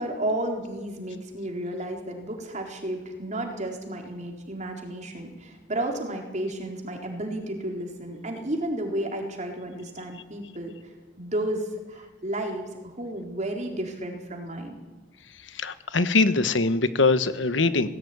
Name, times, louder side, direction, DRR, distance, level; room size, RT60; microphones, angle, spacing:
voice 1, 0.0-10.7 11.2-14.8, right 1 dB, 40° right, 2 dB, 4.2 m, -32 dB
voice 2, 15.4-17.9, left 3 dB, 80° left, 12 dB, 1.2 m, -23 dB
18.5 x 16.5 x 9.5 m, 1.1 s
head